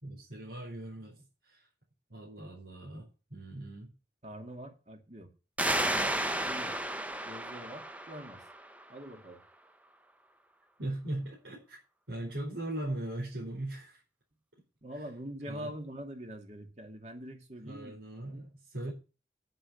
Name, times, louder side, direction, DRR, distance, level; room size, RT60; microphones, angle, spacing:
voice 1, 0.0-1.2 1.4-1.6 2.1-3.9 10.8-11.8 12.1-14.0 14.9-15.0 15.5-15.7 17.6-18.9, right 1 dB, 80° right, -3 dB, 4.7 m, -39 dB
voice 2, 4.2-5.3 5.7-6.8 7.2-8.4 8.9-9.4 14.8-18.0 18.3-18.5, equal, 40° right, 4 dB, 2.3 m, -44 dB
sound 1, 5.6-8.9, right 1 dB, 10° right, 0.7 m, -33 dB
10.0 x 7.7 x 7.1 m, 0.32 s
head